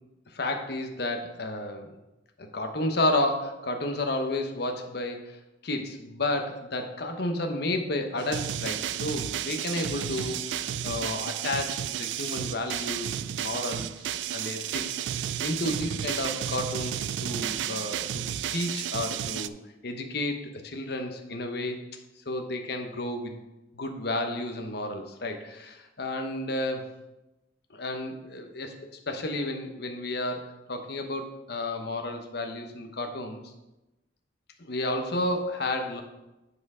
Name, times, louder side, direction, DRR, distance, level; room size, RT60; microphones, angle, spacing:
voice 1, 0.3-2.0 2.4-15.0 15.4-18.2 18.5-19.6 19.8-21.8 22.3-23.3 23.7-26.9 27.7-28.8 29.1-33.4 34.6-36.0, left 1 dB, 60° left, 5 dB, 1.0 m, -31 dB
sound 1, 8.2-19.5, right 10 dB, 75° right, 0.3 m, -32 dB
8.4 x 4.9 x 4.9 m, 0.99 s
head